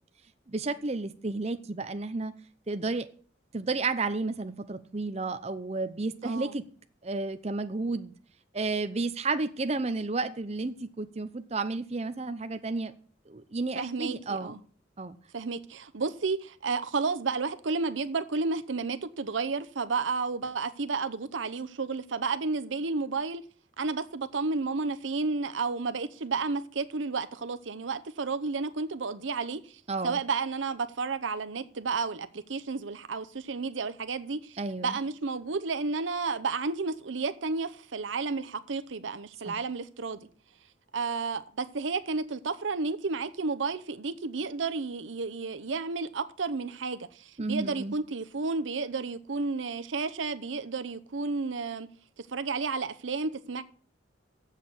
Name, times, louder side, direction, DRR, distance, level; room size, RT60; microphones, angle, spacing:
voice 1, 0.5-2.3 2.7-3.1 3.5-6.6 7.0-8.1 8.5-12.9 13.3-14.6 15.0-15.2 29.9-30.2 34.6-35.0 39.4-39.6 47.4-47.9, right 3 dB, 35° right, 0.7 m, -32 dB
voice 2, 6.2-6.6 13.7-14.6 15.3-23.4 23.8-40.3 40.9-51.9 52.3-53.6, right 4 dB, 90° right, 0.7 m, -32 dB
7.6 x 6.6 x 8.0 m
head